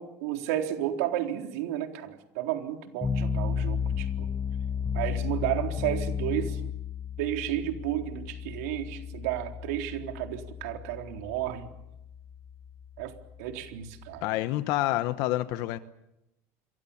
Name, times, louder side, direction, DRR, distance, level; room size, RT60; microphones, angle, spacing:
voice 1, 0.0-4.3 4.9-6.6 7.2-11.7 13.0-13.1 13.4-14.2, right 12 dB, 80° right, 4 dB, 3.9 m, -32 dB
sound 1, 3.0-14.2, left 6 dB, 10° left, 1.4 m, -33 dB
voice 2, 14.2-15.8, left 15 dB, 55° left, 12 dB, 1.0 m, -28 dB
28.5 x 23.0 x 7.3 m, 0.88 s
cardioid pair, 165°, 8 cm